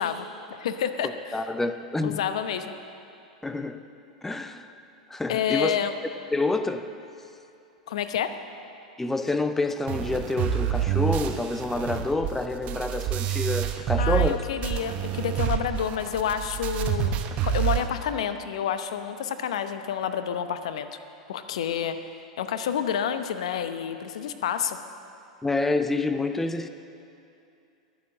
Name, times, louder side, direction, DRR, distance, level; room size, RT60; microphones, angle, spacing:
voice 1, 0.0-1.4 2.0-2.7 5.3-5.9 7.9-8.4 14.0-20.9 21.3-22.0 22.4-24.8, left 8 dB, 65° left, 10 dB, 0.8 m, -29 dB
voice 2, 1.0-2.2 3.4-3.9 4.2-4.7 5.1-5.8 6.3-6.9 9.0-14.4 25.4-26.7, left 2 dB, 10° left, 9 dB, 0.6 m, -28 dB
sound 1, 9.9-14.4 14.6-17.9, right 10 dB, 40° right, 1.1 m, -27 dB
21.5 x 7.2 x 7.4 m, 2.6 s
figure-of-eight pair, 90°, 4 cm